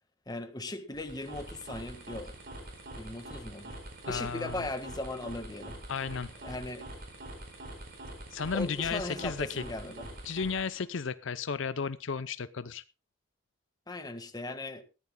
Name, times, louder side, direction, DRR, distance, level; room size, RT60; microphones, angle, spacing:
voice 1, 0.3-2.3 2.9-3.8 4.0-5.8 6.4-6.8 8.5-10.1 13.9-14.8, left 2 dB, 20° left, 8 dB, 1.6 m, -38 dB
sound 1, 0.9-10.8, right 1 dB, 50° right, 4.6 m, -45 dB
voice 2, 4.1-4.7 5.9-6.3 8.3-9.6 10.2-12.8, left 5 dB, 70° left, 14 dB, 0.6 m, -34 dB
20.5 x 14.5 x 2.2 m, 0.31 s
head